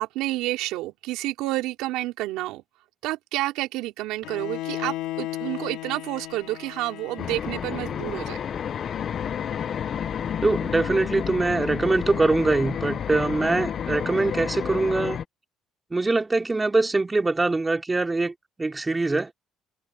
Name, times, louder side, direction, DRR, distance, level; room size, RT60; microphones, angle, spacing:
voice 1, 0.0-2.6 3.0-8.4, right 17 dB, 85° right, 4.3 m, -29 dB
Bowed string instrument, 4.2-10.3, left 16 dB, 80° left, 5.2 m, -37 dB
sound 1, 7.2-15.2, left 8 dB, 50° left, 1.2 m, -30 dB
voice 2, 10.4-15.2 15.9-19.3, right 3 dB, 20° right, 4.2 m, -23 dB
supercardioid pair, 85°, 0 cm